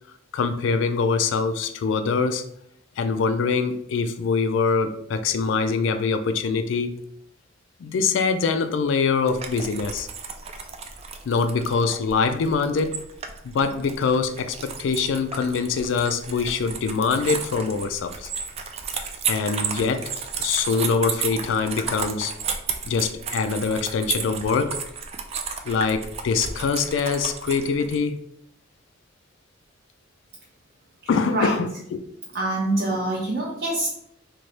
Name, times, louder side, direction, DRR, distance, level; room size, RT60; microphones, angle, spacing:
voice 1, 0.3-2.4 3.0-7.0 7.8-10.1 11.3-13.0 13.4-18.3 19.2-20.1 20.4-22.3 22.9-24.8 25.6-28.2 31.1-32.0, left 5 dB, 70° left, 9 dB, 0.3 m, -24 dB
sound 1, 9.3-28.0, right 6 dB, 30° right, 0.3 m, -33 dB
voice 2, 32.3-33.9, right 2 dB, 55° right, -4 dB, 0.7 m, -25 dB
3.1 x 2.1 x 3.9 m, 0.71 s
head